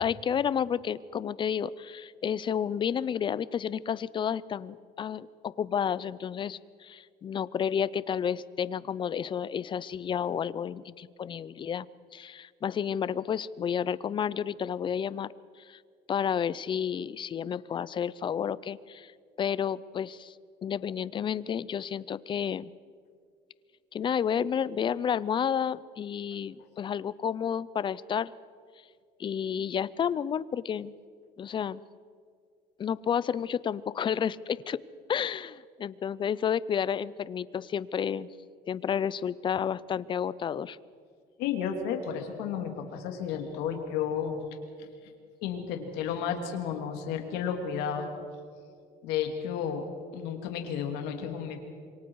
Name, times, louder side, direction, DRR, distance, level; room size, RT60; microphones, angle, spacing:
voice 1, 0.0-11.9 12.1-15.3 15.6-15.8 16.1-19.1 19.4-20.3 20.6-22.7 23.9-28.3 29.2-30.9 31.4-31.8 32.8-34.8 35.1-38.3 38.7-40.8, left 8 dB, 30° left, 19 dB, 0.5 m, -31 dB
voice 2, 41.4-44.4 44.8-44.9 45.4-48.1 49.0-49.9 50.1-51.6, left 8 dB, 85° left, 4 dB, 2.6 m, -32 dB
26.5 x 23.5 x 4.7 m, 2.2 s
cardioid pair, 130°, 16 cm